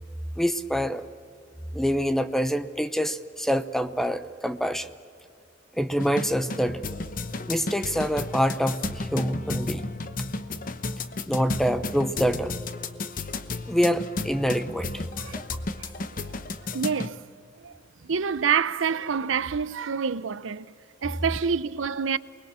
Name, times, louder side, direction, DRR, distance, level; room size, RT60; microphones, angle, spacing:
voice 1, 0.4-1.1 1.7-4.9 5.8-6.8 7.4-9.8 11.3-12.5 13.7-14.9, equal, ahead, 0.7 m, -26 dB
sound 1, 5.9-17.1, left 3 dB, 45° left, 1.0 m, -33 dB
voice 2, 15.8-16.3 16.7-17.2 17.6-20.7 21.0-22.2, right 6 dB, 85° right, 0.6 m, -27 dB
28.5 x 21.0 x 6.9 m
head